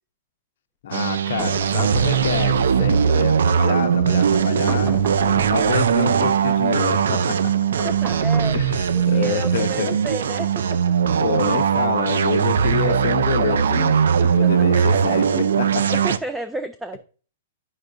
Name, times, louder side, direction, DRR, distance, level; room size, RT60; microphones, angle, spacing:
voice 1, 0.8-7.4 8.5-10.0 11.2-14.0 14.3-16.0, left 8 dB, 60° left, 0.6 m, -27 dB
sound 1, 0.9-16.2, right 7 dB, 80° right, 0.4 m, -20 dB
sound 2, 1.4-2.7 4.7-6.0 7.8-9.0, right 2 dB, 25° right, 1.3 m, -34 dB
voice 2, 7.7-8.6 8.9-10.8 14.2-14.5 14.7-15.0 15.9-17.0, right 1 dB, 5° right, 0.3 m, -32 dB
8.9 x 5.3 x 2.5 m
hypercardioid pair, 135°, 0 cm